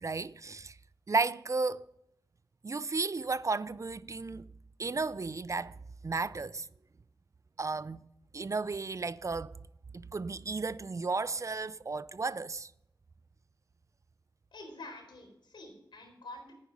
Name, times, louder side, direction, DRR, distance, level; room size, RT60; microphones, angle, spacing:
voice 1, 0.0-0.8 1.1-1.8 2.6-4.5 4.8-5.7 6.0-6.7 7.6-8.1 8.3-9.5 9.9-12.7, right 3 dB, 40° right, 0.5 m, -33 dB
voice 2, 14.5-16.5, left 2 dB, 75° left, 4.2 m, -47 dB
10.5 x 9.7 x 5.3 m
cardioid pair, 50°, 8 cm